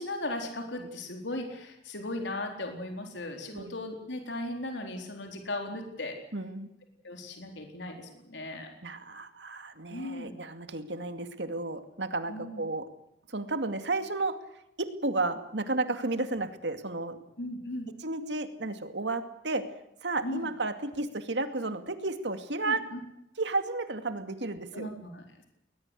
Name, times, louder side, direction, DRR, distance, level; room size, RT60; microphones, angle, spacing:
voice 1, 0.0-6.2 7.0-8.7 9.9-10.3 12.3-12.6 17.4-17.9 20.2-20.5 22.6-23.0 24.7-25.4, left 1 dB, 85° left, 3 dB, 4.2 m, -37 dB
voice 2, 6.3-6.7 8.8-12.9 13.3-14.4 14.8-17.2 18.0-19.7 20.0-22.8 23.4-24.9, right 2 dB, 75° right, 8 dB, 2.4 m, -32 dB
21.0 x 20.5 x 8.3 m, 0.80 s
head